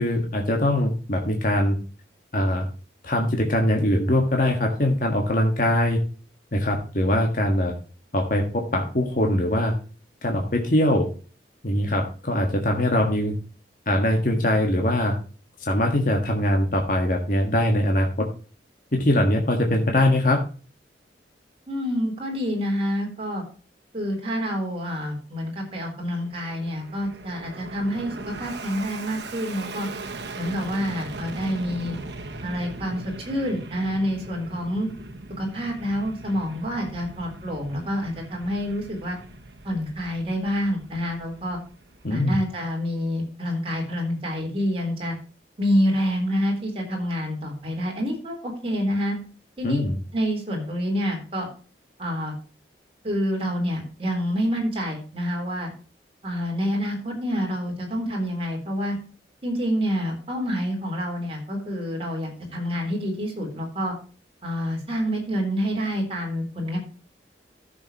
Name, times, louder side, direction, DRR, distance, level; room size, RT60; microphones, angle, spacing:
voice 1, 0.0-1.8 2.3-2.7 3.0-6.0 6.5-7.7 8.1-9.7 10.2-11.1 11.6-13.3 13.9-15.2 15.6-18.3 18.9-20.4 42.0-42.4 49.6-50.0, left 1 dB, 50° left, 2 dB, 1.6 m, -22 dB
voice 2, 21.7-23.4 23.9-29.9 30.4-32.0 32.4-34.9 35.4-39.2 39.6-41.6 42.1-45.1 45.6-49.2 49.6-49.8 50.1-51.5 52.0-52.4 53.0-55.7 56.2-59.0 59.4-63.9 64.4-66.8, equal, 35° right, 0 dB, 3.9 m, -27 dB
Fixed-wing aircraft airplane, 26.0-42.6, right 2 dB, 80° right, 1.4 m, -39 dB
14.5 x 7.0 x 3.0 m, 0.38 s
head